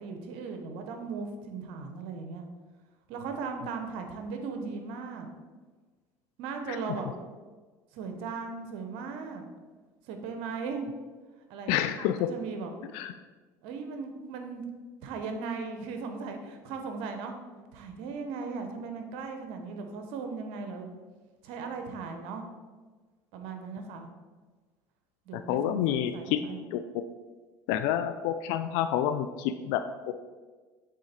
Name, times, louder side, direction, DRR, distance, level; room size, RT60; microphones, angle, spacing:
voice 1, 0.0-2.4 3.1-5.3 6.4-7.1 7.9-9.4 10.1-10.8 11.5-12.7 13.6-14.6 15.0-17.3 17.7-20.9 21.4-22.4 23.3-24.1 25.3-26.6, right 4 dB, 75° right, 5 dB, 1.0 m, -37 dB
voice 2, 11.7-12.3 12.9-13.1 25.3-26.4 26.7-27.0 27.7-30.1, left 10 dB, 75° left, 9 dB, 0.4 m, -29 dB
7.5 x 3.7 x 4.4 m, 1.4 s
supercardioid pair, 85°, 9 cm